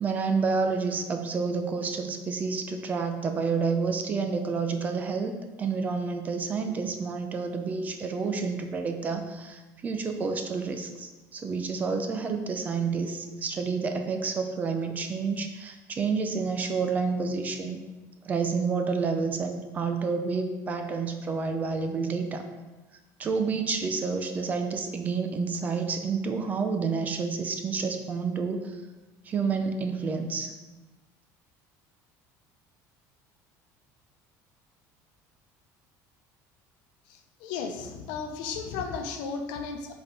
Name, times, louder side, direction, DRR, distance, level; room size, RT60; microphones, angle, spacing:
voice 1, 0.0-17.8 18.2-22.4 23.2-28.8 29.2-30.5, right 5 dB, 20° right, 6 dB, 0.5 m, -29 dB
voice 2, 37.1-39.9, left 5 dB, 80° left, 5 dB, 0.8 m, -34 dB
5.7 x 4.3 x 5.2 m, 1.2 s
cardioid pair, 175°, 7 cm